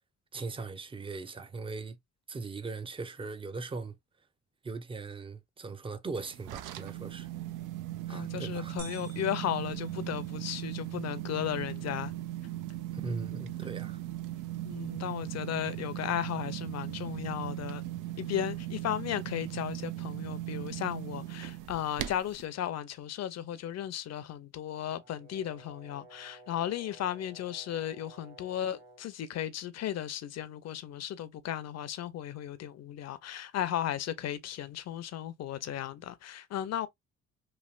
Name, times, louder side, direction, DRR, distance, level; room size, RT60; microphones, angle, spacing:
voice 1, 0.3-2.0 2.3-4.0 4.6-7.3 8.1-8.8 12.9-14.0, right 4 dB, 20° right, 0.5 m, -39 dB
sound 1, 6.2-22.4, right 14 dB, 90° right, 0.5 m, -38 dB
voice 2, 8.1-12.1 14.6-17.8 18.2-36.9, left 11 dB, 60° left, 0.6 m, -35 dB
sound 2, 8.8-10.7, right 2 dB, 65° right, 1.3 m, -51 dB
Brass instrument, 24.9-29.1, right 2 dB, 35° right, 1.1 m, -55 dB
3.2 x 2.5 x 2.4 m
cardioid pair, 90°, 30 cm